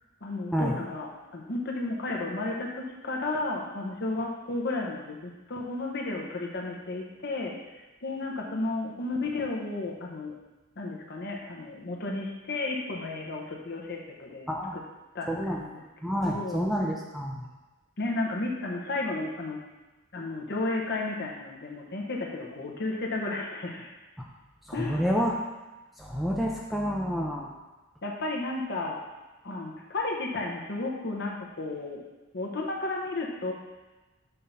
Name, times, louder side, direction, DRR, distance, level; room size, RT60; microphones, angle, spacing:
voice 1, 0.2-7.5 8.0-10.3 10.8-14.8 15.1-15.8 16.2-16.6 18.0-19.6 20.1-23.9 24.7-25.0 28.0-29.0 29.4-32.0 32.3-33.5, left 2 dB, 55° left, -1 dB, 1.0 m, -33 dB
voice 2, 15.3-15.6 16.0-17.4 24.2-24.3 24.7-25.4 26.0-27.5, equal, ahead, -2 dB, 0.5 m, -29 dB
5.6 x 3.7 x 5.6 m, 1.1 s
head